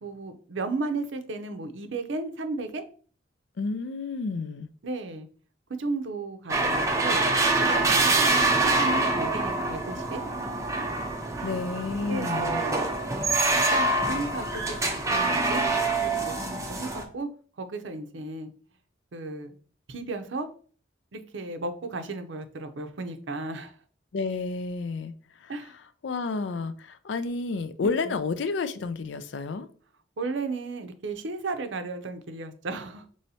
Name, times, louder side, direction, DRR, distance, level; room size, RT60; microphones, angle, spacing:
voice 1, 0.0-2.8 4.8-5.3 5.8-7.3 7.6-8.3 8.6-10.2 12.0-12.8 13.7-15.7 16.0-17.3 17.6-18.5 19.1-19.5 19.9-20.5 21.1-23.7 25.5-25.7 27.8-28.2 30.2-33.1, right 3 dB, 75° right, 0.6 m, -34 dB
voice 2, 3.6-4.7 11.4-12.6 24.1-25.1 25.4-29.7, left 4 dB, 70° left, 0.4 m, -31 dB
sound 1, 6.5-17.0, right 2 dB, 15° right, 0.4 m, -25 dB
5.5 x 3.1 x 2.7 m
head